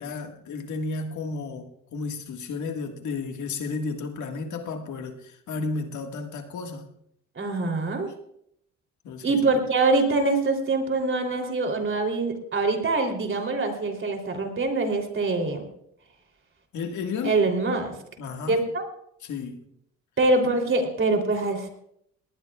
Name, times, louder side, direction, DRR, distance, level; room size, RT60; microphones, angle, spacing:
voice 1, 0.0-6.9 9.0-9.4 16.7-17.4 18.2-18.6 19.2-19.6, left 4 dB, 75° left, 1.8 m, -33 dB
voice 2, 7.3-8.1 9.2-15.7 17.2-17.9 18.5-18.8 20.2-21.7, right 3 dB, 40° right, 3.3 m, -24 dB
20.0 x 19.0 x 2.4 m
cardioid pair, 90°, 30 cm